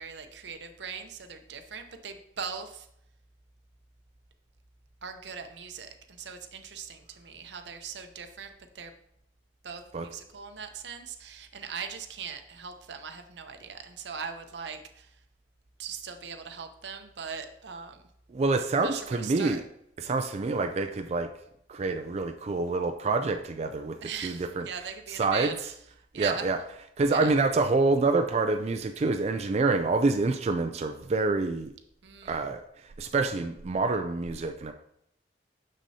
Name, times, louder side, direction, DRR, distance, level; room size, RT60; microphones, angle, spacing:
voice 1, 0.0-2.9 5.0-8.9 9.6-15.2 15.8-18.0 18.8-19.6 24.0-25.5 26.1-26.5 27.1-27.3 32.0-32.4, right 6 dB, 80° right, 7 dB, 0.7 m, -40 dB
voice 2, 18.3-19.6 20.0-21.3 21.7-25.7 26.1-31.7 32.2-34.7, right 3 dB, 40° right, 6 dB, 0.3 m, -27 dB
6.7 x 6.1 x 2.8 m, 0.74 s
head